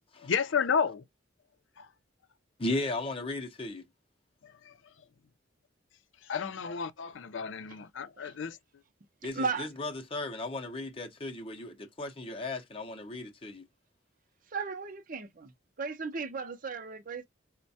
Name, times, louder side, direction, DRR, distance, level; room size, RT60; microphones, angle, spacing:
voice 1, 0.2-1.0 1.8-1.9 4.7-4.8 6.3-8.6, left 6 dB, 75° left, 0.5 m, -31 dB
voice 2, 2.6-3.8 9.2-13.6, left 2 dB, 30° left, 0.6 m, -36 dB
voice 3, 9.2-9.7 14.5-15.5 15.8-17.2, right 5 dB, 45° right, 0.6 m, -35 dB
4.4 x 2.1 x 2.6 m
head